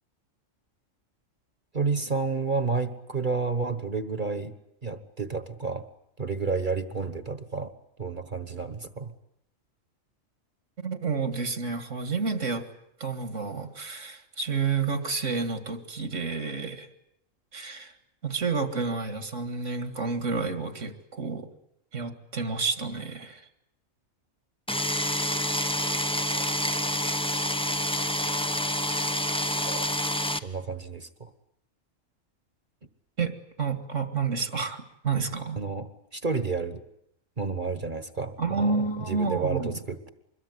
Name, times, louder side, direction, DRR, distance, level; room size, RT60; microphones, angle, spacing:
voice 1, 1.7-4.5 4.8-5.8 6.2-7.7 8.0-9.1 25.8-27.0 28.2-28.3 29.5-29.9 30.4-31.3 35.6-36.8 37.4-40.1, right 4 dB, 40° right, 10 dB, 1.5 m, -31 dB
voice 2, 10.8-12.7 13.0-16.9 17.5-17.9 18.2-21.5 21.9-23.5 33.2-35.6 38.4-39.7, right 4 dB, 65° right, 8 dB, 2.4 m, -30 dB
sound 1, 24.7-30.4, left 1 dB, 5° left, 0.8 m, -27 dB
25.5 x 22.0 x 9.7 m, 0.78 s
omnidirectional pair, 1.4 m